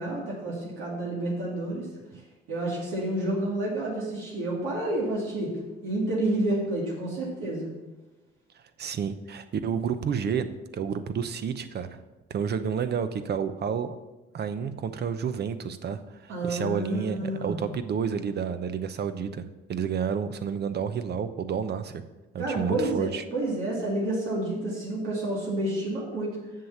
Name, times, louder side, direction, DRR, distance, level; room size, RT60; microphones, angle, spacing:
voice 1, 0.0-1.9 2.5-5.5 5.8-7.7 16.3-17.7 22.4-26.4, right 1 dB, 85° right, -4 dB, 2.5 m, -29 dB
voice 2, 8.8-12.0 12.3-14.0 14.3-22.0 22.3-23.2, right 7 dB, 55° right, 10 dB, 0.8 m, -30 dB
7.6 x 6.7 x 7.1 m, 1.2 s
cardioid pair, 90°, 20 cm